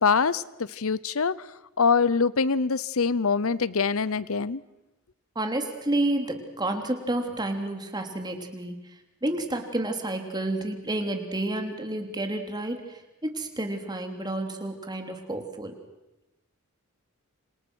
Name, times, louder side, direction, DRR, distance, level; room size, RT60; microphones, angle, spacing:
voice 1, 0.0-0.4 0.8-1.3 1.8-4.6, left 5 dB, 70° left, 19 dB, 0.8 m, -24 dB
voice 2, 5.3-8.7 9.2-15.8, right 1 dB, 20° right, 5 dB, 3.2 m, -30 dB
29.0 x 27.0 x 6.4 m, 0.97 s
head